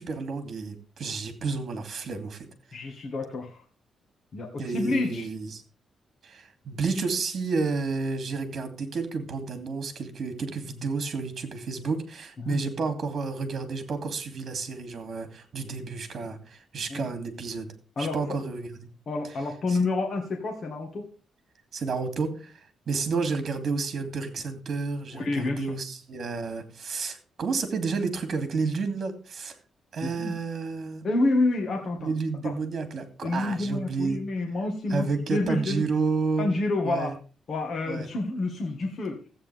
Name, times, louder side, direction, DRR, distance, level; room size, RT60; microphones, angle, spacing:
voice 1, 0.0-2.5 4.6-5.6 6.2-17.7 18.0-18.9 19.7-19.8 21.7-22.5 22.9-29.5 29.9-31.0 32.0-34.2 34.9-36.5 36.8-37.1 37.9-38.1, right 4 dB, 45° right, 8 dB, 2.7 m, -31 dB
voice 2, 2.7-3.6 4.3-5.3 12.4-12.6 16.9-17.1 18.0-18.2 19.1-21.1 25.1-25.7 30.0-30.3 31.0-32.1 32.4-32.5 33.2-35.8 36.4-37.1 37.5-39.2, left 2 dB, 45° left, 2 dB, 1.8 m, -28 dB
14.5 x 8.6 x 3.5 m, 0.37 s
cardioid pair, 140°, 0 cm